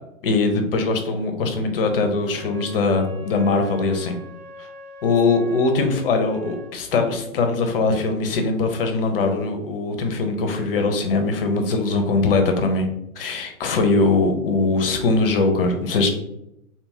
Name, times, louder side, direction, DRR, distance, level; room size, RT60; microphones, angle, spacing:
voice 1, 0.2-4.1 5.0-12.9 13.2-16.1, left 3 dB, 40° left, 5 dB, 0.5 m, -21 dB
Wind instrument woodwind instrument, 2.3-6.7, equal, 35° right, 0.8 m, -42 dB
2.6 x 2.3 x 2.7 m, 0.81 s
figure-of-eight pair, 120°, 44 cm